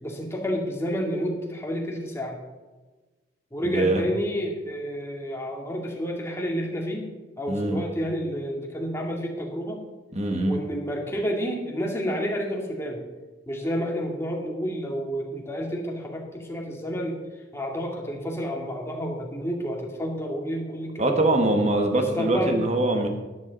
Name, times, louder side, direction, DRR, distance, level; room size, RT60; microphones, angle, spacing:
voice 1, 0.0-2.4 3.5-7.1 7.4-9.8 10.4-13.0 13.5-17.2 17.5-21.4 21.9-22.7, equal, 15° left, 0 dB, 2.2 m, -30 dB
voice 2, 3.7-4.0 7.5-7.8 10.1-10.6 21.0-23.1, right 2 dB, 40° right, 4 dB, 1.7 m, -23 dB
13.5 x 11.0 x 4.1 m, 1.2 s
head